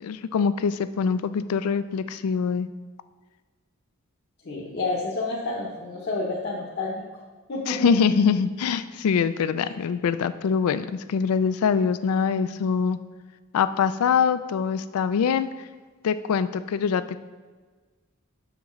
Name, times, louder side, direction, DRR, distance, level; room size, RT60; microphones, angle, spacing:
voice 1, 0.0-2.7 7.7-13.0 13.5-15.7 16.0-17.2, left 6 dB, 90° left, 13 dB, 0.3 m, -24 dB
voice 2, 4.4-7.0 7.5-8.0 9.6-9.7, left 3 dB, 50° left, -4 dB, 0.8 m, -29 dB
6.1 x 6.0 x 3.1 m, 1.4 s
head